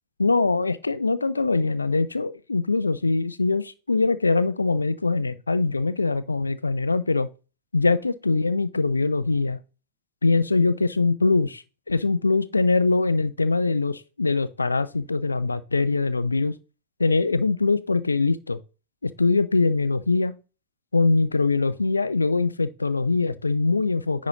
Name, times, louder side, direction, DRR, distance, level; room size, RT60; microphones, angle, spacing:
voice 1, 0.2-7.3 7.7-9.6 10.2-16.5 17.0-18.6 19.0-20.3 20.9-24.3, left 3 dB, 80° left, 0.5 m, -23 dB
9.8 x 5.0 x 2.9 m
figure-of-eight pair, 90°, 0 cm